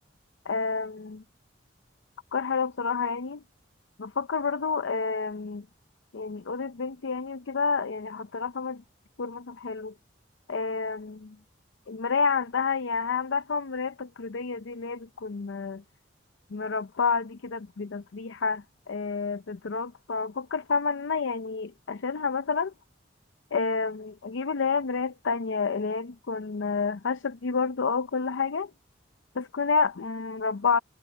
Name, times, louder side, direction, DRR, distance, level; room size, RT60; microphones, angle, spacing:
voice 1, 0.5-1.2 2.3-3.4 4.0-5.6 6.1-8.8 9.2-9.9 10.5-11.4 11.9-15.8 16.5-22.7 23.5-28.7 29.3-30.8, left 5 dB, 80° left, 0.6 m, -29 dB
head